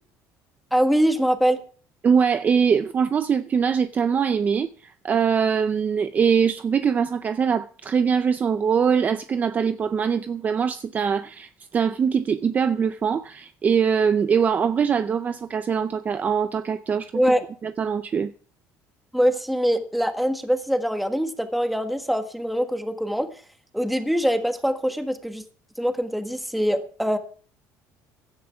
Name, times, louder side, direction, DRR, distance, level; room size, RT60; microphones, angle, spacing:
voice 1, 0.7-1.6 17.1-17.4 19.1-23.3 23.7-25.4 25.8-27.2, equal, ahead, 1.5 m, -23 dB
voice 2, 2.0-17.3 17.6-18.3, right 6 dB, 25° right, 0.5 m, -22 dB
16.5 x 12.0 x 3.5 m
cardioid pair, 150°, 6 cm